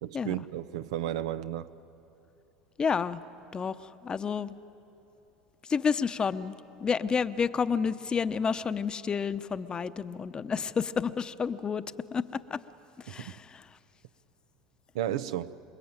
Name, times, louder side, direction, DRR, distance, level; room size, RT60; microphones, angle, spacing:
voice 1, 0.0-1.7 13.2-13.3 14.9-15.5, right 12 dB, 80° right, 0.8 m, -33 dB
voice 2, 2.8-3.2 3.5-3.7 4.0-4.5 5.7-6.5 6.8-11.8 12.1-12.6 13.1-13.6, left 6 dB, 30° left, 0.9 m, -30 dB
26.5 x 22.0 x 9.0 m
hypercardioid pair, 90°, 3 cm